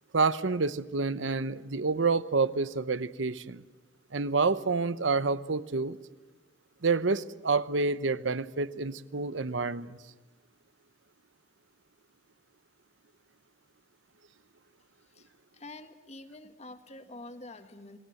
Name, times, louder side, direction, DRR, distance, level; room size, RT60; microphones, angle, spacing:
voice 1, 0.1-3.6 4.1-6.0 6.8-10.0, right 4 dB, 85° right, 0.9 m, -28 dB
voice 2, 15.5-18.0, left 2 dB, 35° left, 1.7 m, -46 dB
28.5 x 20.0 x 7.8 m
head